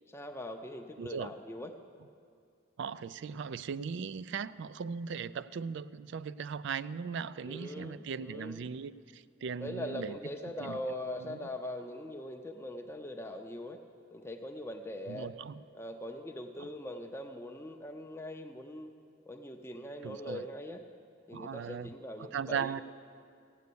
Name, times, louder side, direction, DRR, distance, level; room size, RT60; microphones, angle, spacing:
voice 1, 0.1-1.7 7.4-8.7 9.6-13.8 14.1-15.3 15.7-18.9 19.3-20.8 21.3-22.8, left 1 dB, 15° left, 4 dB, 0.5 m, -41 dB
voice 2, 1.0-1.3 2.8-10.2 10.6-10.8 11.3-11.4 15.1-15.6 20.0-20.4 21.3-21.9 22.3-22.8, right 6 dB, 60° right, 17 dB, 0.3 m, -38 dB
15.0 x 9.3 x 6.8 m, 2.2 s
head